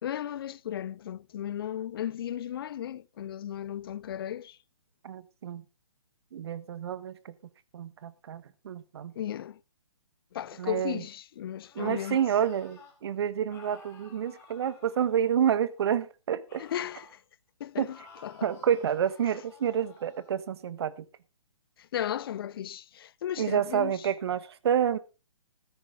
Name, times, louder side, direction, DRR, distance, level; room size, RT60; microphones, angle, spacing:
voice 1, 0.0-4.6 9.2-9.6 10.3-12.2 16.6-17.2 17.6-18.0 18.2-18.5 21.8-24.0, left 10 dB, 50° left, 0.5 m, -35 dB
voice 2, 5.0-5.6 6.3-7.3 7.7-9.1 10.6-11.0 11.7-16.6 17.8-17.9 18.4-21.0 23.4-25.0, right 9 dB, 55° right, 1.2 m, -29 dB
sound 1, 11.6-13.0 13.5-15.8 16.5-17.2 17.8-20.3, left 4 dB, 15° left, 3.6 m, -54 dB
14.0 x 9.8 x 3.8 m
hypercardioid pair, 145°, 16 cm